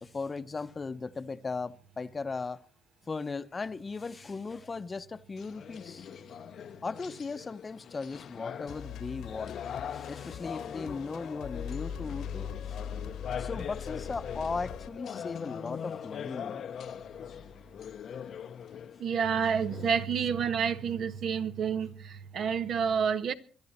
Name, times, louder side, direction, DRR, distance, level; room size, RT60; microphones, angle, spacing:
voice 1, 0.0-2.6 3.1-6.1 6.8-9.6 9.9-12.8 13.4-16.6, left 4 dB, 30° left, 0.8 m, -37 dB
sound 1, 5.4-20.0, left 8 dB, 60° left, 0.8 m, -42 dB
sound 2, 8.7-14.9, left 7 dB, 85° left, 1.6 m, -40 dB
voice 2, 19.0-23.3, right 7 dB, 65° right, 1.3 m, -29 dB
24.0 x 11.5 x 4.3 m
cardioid pair, 90°, 0 cm